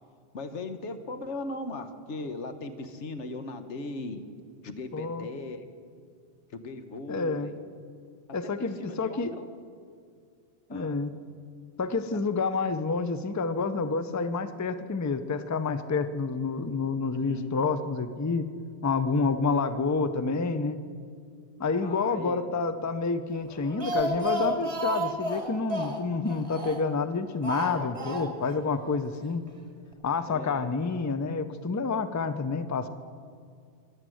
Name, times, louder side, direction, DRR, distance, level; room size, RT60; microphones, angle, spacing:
voice 1, 0.3-4.2 4.6-5.6 6.5-7.5 8.4-9.5 10.7-11.0 17.0-17.6 21.8-22.6 27.8-28.2 30.3-30.7, left 2 dB, 75° left, 9 dB, 1.3 m, -38 dB
voice 2, 4.9-5.3 7.1-7.5 8.3-9.3 10.7-11.1 11.8-18.5 18.8-20.8 21.6-29.4 30.0-32.9, left 4 dB, 25° left, 11 dB, 0.4 m, -28 dB
Speech, 23.5-27.0 27.4-28.6 28.8-28.9 29.2-29.3, right 1 dB, 30° right, 1.3 m, -32 dB
14.5 x 10.5 x 7.8 m, 2.3 s
omnidirectional pair, 1.2 m